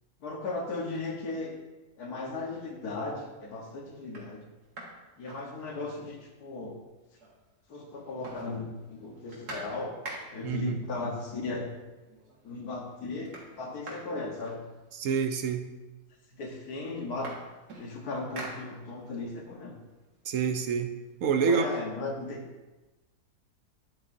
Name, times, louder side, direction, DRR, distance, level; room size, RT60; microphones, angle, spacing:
voice 1, 0.2-1.6 2.0-4.4 5.2-6.8 7.7-10.0 10.3-11.7 12.4-14.6 16.3-17.4 17.8-19.8 21.4-22.5, left 3 dB, 75° left, 1 dB, 1.8 m, -36 dB
sound 1, 3.6-3.7 4.0-6.1 6.4-6.5 6.8-7.6 7.9-10.6 11.5-11.6 12.0-12.5 12.8-15.2 16.0-16.1 16.4-19.2 19.6-21.4, right 2 dB, 85° right, 2.3 m, -46 dB
voice 2, 10.4-10.8 15.0-15.7 20.3-20.9 21.2-21.7, right 6 dB, 65° right, 6 dB, 1.0 m, -27 dB
9.7 x 8.0 x 2.7 m, 1.1 s
omnidirectional pair, 1.7 m